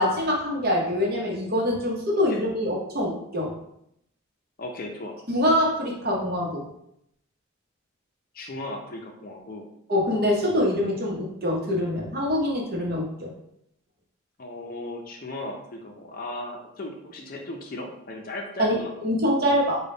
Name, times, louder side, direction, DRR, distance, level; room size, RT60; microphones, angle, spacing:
voice 1, 0.0-3.5 5.3-6.6 9.9-13.3 18.6-18.8 19.0-19.8, left 1 dB, 45° right, -2 dB, 0.9 m, -24 dB
voice 2, 4.6-5.2 8.3-9.6 14.4-18.9, left 2 dB, 45° left, 1 dB, 0.5 m, -36 dB
3.5 x 2.3 x 3.8 m, 0.75 s
head